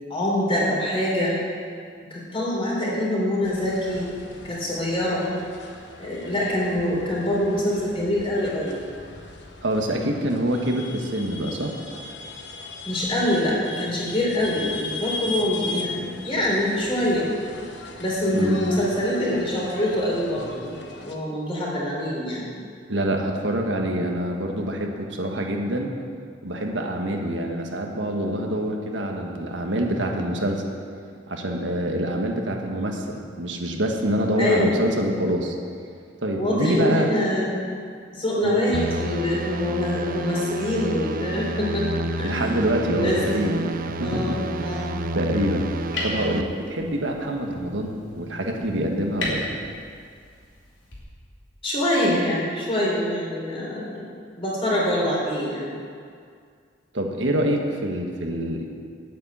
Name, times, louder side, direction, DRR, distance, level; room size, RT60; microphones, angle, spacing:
voice 1, 0.1-1.3 2.1-4.1 4.4-5.2 6.0-8.8 12.8-17.3 18.0-20.8 21.0-22.5 34.4-34.8 36.4-37.5 38.1-42.6 42.9-43.5 44.0-45.0 51.6-54.1 54.4-55.7, left 1 dB, 30° left, -5 dB, 3.7 m, -25 dB
sound 1, 3.4-21.2, left 3 dB, 70° left, 1.2 m, -38 dB
voice 2, 9.6-11.7 18.3-18.6 22.9-25.9 26.4-30.6 31.3-35.5 36.2-37.1 38.4-38.6 42.2-45.7 46.0-49.5 56.9-58.7, right 1 dB, 85° right, 2 dB, 1.5 m, -26 dB
sound 2, 38.7-46.4, right 1 dB, 50° right, 0.6 m, -30 dB
sound 3, 43.0-51.0, left 2 dB, 90° left, 3.2 m, -38 dB
9.0 x 8.7 x 8.6 m, 2.2 s
head